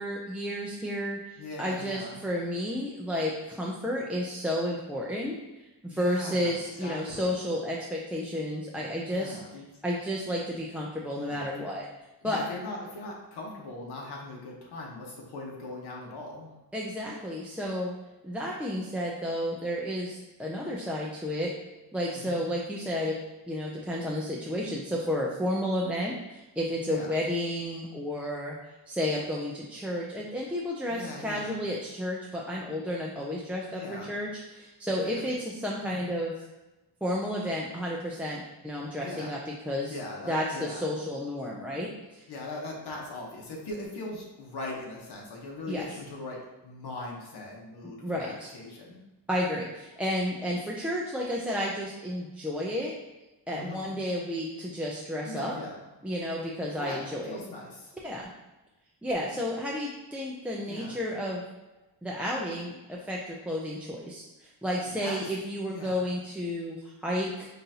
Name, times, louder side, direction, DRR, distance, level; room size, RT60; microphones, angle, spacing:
voice 1, 0.0-5.4 5.8-9.4 9.8-11.9 12.2-12.5 16.7-18.0 18.2-21.5 21.9-28.6 28.9-36.4 37.0-40.0 40.3-42.3 45.7-45.9 48.0-48.5 49.3-52.9 53.5-55.6 56.0-57.4 58.0-58.3 59.0-61.4 62.0-67.5, equal, 5° right, -4 dB, 0.3 m, -32 dB
voice 2, 1.4-2.2 5.9-7.4 9.1-9.6 11.1-11.7 12.2-16.5 22.1-22.4 26.8-27.1 30.9-31.6 33.7-34.1 35.0-35.4 35.9-36.0 39.0-39.3 39.9-40.9 42.3-49.0 53.5-53.9 55.2-55.8 56.7-57.9 60.7-61.0 64.7-65.3 65.7-66.1, left 2 dB, 75° left, -2 dB, 1.1 m, -40 dB
5.4 x 2.5 x 2.8 m, 1.0 s
wide cardioid pair, 135°, 40 cm